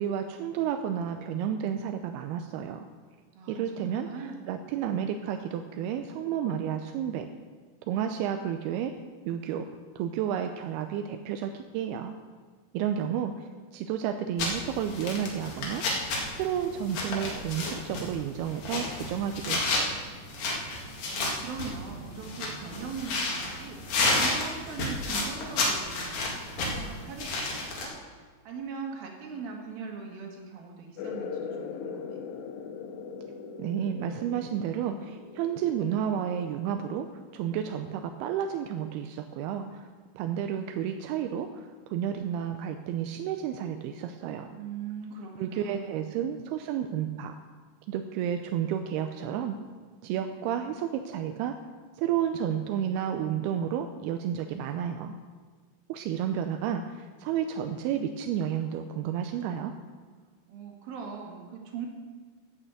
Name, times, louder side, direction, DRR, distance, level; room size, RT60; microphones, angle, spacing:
voice 1, 0.0-2.9 3.5-7.3 7.9-8.9 9.3-9.7 10.0-12.1 12.7-15.8 16.4-19.9 33.6-37.1 37.3-39.9 40.1-44.5 45.4-47.3 47.9-49.6 50.0-51.6 52.0-55.1 55.9-59.7, right 9 dB, 80° right, 6 dB, 2.4 m, -31 dB
voice 2, 3.3-4.5 21.0-23.8 24.2-27.9 28.2-32.2 44.5-46.1 60.5-61.9, right 5 dB, 60° right, 0 dB, 3.5 m, -40 dB
sound 1, 14.4-27.9, left 2 dB, 55° left, 3.4 m, -31 dB
sound 2, 31.0-38.1, left 6 dB, 80° left, 3.1 m, -41 dB
14.0 x 6.7 x 7.8 m, 1.4 s
omnidirectional pair, 4.9 m